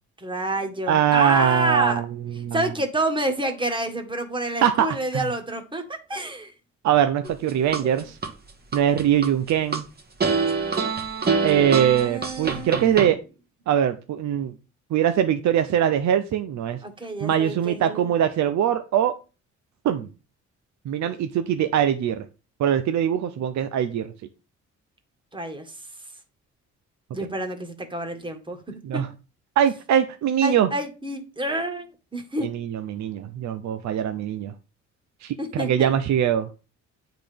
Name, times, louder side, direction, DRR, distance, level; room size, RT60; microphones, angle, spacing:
voice 1, 0.2-2.0 2.5-6.5 7.2-7.3 7.8-8.0 11.9-13.1 16.8-18.1 25.3-25.7 27.1-28.6 28.9-29.0 30.4-31.9 32.1-32.5 35.4-35.9, right 1 dB, 15° right, 5 dB, 1.8 m, -28 dB
voice 2, 0.9-2.0 2.4-2.6 4.6-5.2 6.8-8.2 8.7-9.8 11.4-13.2 13.7-14.5 14.9-16.8 17.2-19.1 19.8-20.1 20.9-22.3 22.6-24.1 28.8-29.1 29.6-30.7 32.4-34.5 35.2-36.5, right 9 dB, 70° right, 9 dB, 0.7 m, -22 dB
sound 1, 7.3-8.3 8.7-9.8 10.2-13.1, right 4 dB, 30° right, 1.4 m, -25 dB
8.5 x 4.0 x 5.1 m, 0.32 s
cardioid pair, 90°, 30 cm